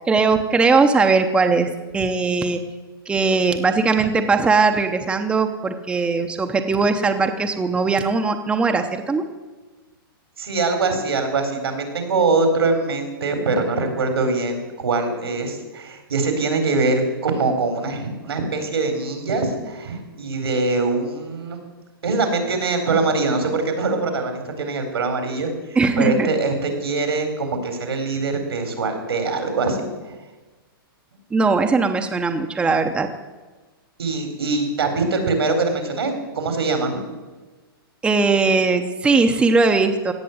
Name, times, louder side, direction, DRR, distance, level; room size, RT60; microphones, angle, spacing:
voice 1, 0.1-2.6 3.1-9.2 25.8-26.3 31.3-33.1 38.0-40.1, right 4 dB, 10° right, 5 dB, 0.8 m, -19 dB
voice 2, 10.4-21.6 22.0-25.5 26.0-29.9 34.0-37.0, right 3 dB, 90° right, 6 dB, 4.0 m, -23 dB
17.0 x 6.7 x 9.4 m, 1.2 s
hypercardioid pair, 145°, 13 cm